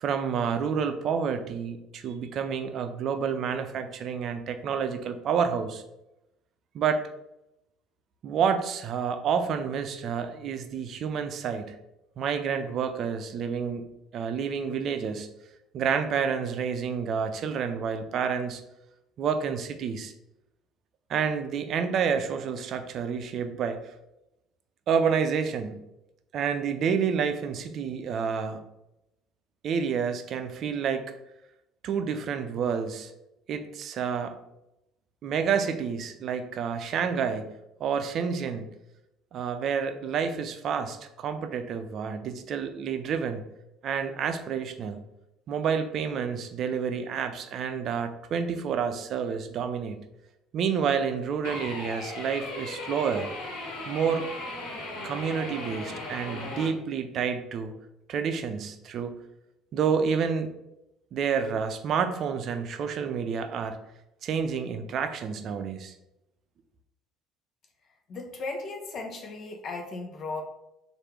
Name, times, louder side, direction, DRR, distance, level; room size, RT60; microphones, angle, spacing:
voice 1, 0.0-5.8 6.7-7.1 8.2-11.8 12.2-13.9 14.1-15.3 15.7-18.6 19.2-20.1 21.1-23.9 24.9-25.9 26.3-28.6 29.6-31.1 31.8-33.1 33.5-34.4 35.2-37.5 37.8-38.7 39.3-43.5 43.8-45.0 45.5-50.1 50.5-53.3 53.9-54.3 55.0-57.7 58.1-59.1 59.7-60.5 61.1-63.8 64.2-65.9, right 6 dB, 55° right, 8 dB, 0.5 m, -29 dB
sound 1, 51.4-56.7, left 2 dB, 75° left, 1.3 m, -37 dB
voice 2, 68.1-70.4, left 3 dB, 50° left, 3 dB, 0.8 m, -36 dB
3.3 x 2.5 x 4.5 m, 0.88 s
supercardioid pair, 75°, 0 cm